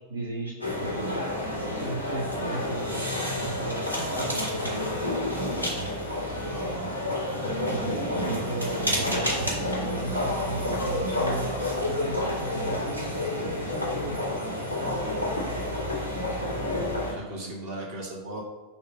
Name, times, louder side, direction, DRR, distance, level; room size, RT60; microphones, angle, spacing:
voice 1, 0.1-1.2 1.7-5.2 7.7-11.5 11.9-14.2 17.3-17.5, right 2 dB, 65° right, -3 dB, 1.0 m, -36 dB
sound 1, 0.6-17.1, left 1 dB, 85° right, 1.7 m, -29 dB
voice 2, 6.4-7.0 17.0-18.4, right 2 dB, 50° right, -2 dB, 1.9 m, -38 dB
6.9 x 2.7 x 5.5 m, 1.3 s
figure-of-eight pair, 90°, 0 cm